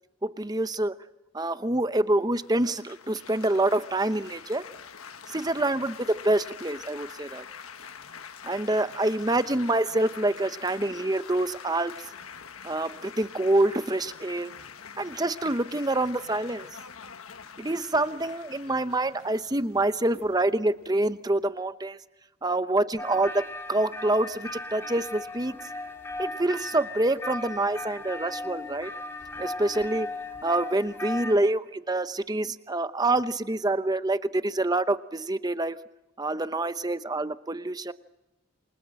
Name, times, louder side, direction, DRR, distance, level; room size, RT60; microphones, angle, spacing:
voice 1, 0.2-0.9 1.3-4.6 5.3-7.4 8.4-11.9 12.6-14.5 15.0-16.7 17.6-22.0 22.4-23.4 23.7-25.6 26.2-28.9 29.4-30.1 30.4-35.8 36.2-37.9, right 2 dB, 20° right, 12 dB, 0.8 m, -26 dB
Laughter / Applause / Chatter, 2.3-21.5, left 7 dB, 85° left, 1.4 m, -45 dB
sound 1, 23.0-31.4, left 2 dB, 10° left, 3.9 m, -37 dB
28.0 x 24.5 x 7.6 m, 1.0 s
head